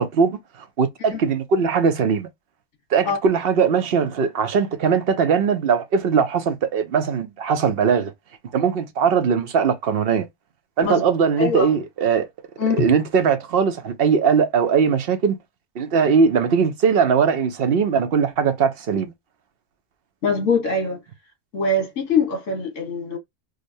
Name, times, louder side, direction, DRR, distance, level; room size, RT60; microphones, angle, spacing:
voice 1, 0.0-2.3 2.9-8.1 8.5-10.3 10.8-12.3 12.7-15.4 15.8-19.1, right 6 dB, 60° right, 0.8 m, -20 dB
voice 2, 11.4-11.7 12.6-12.9 20.2-21.0 21.5-23.2, left 3 dB, 75° left, 1.5 m, -22 dB
4.9 x 2.2 x 2.6 m
omnidirectional pair, 1.3 m